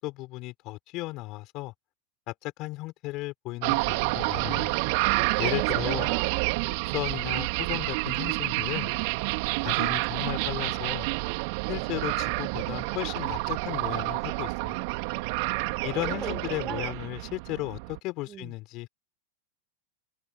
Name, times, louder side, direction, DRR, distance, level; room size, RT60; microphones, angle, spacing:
voice 1, 0.0-1.7 2.3-4.7 5.4-6.1 6.9-8.9 9.6-11.1 11.7-14.8 15.8-18.9, left 20 dB, 40° left, 7.0 m, -35 dB
sound 1, 3.6-18.0, right 30 dB, 45° right, 3.4 m, -29 dB
voice 2, 4.4-5.2 5.6-6.8 15.6-17.1 18.3-18.5, right 9 dB, 25° right, 7.1 m, -42 dB
figure-of-eight pair, 90°, 0 cm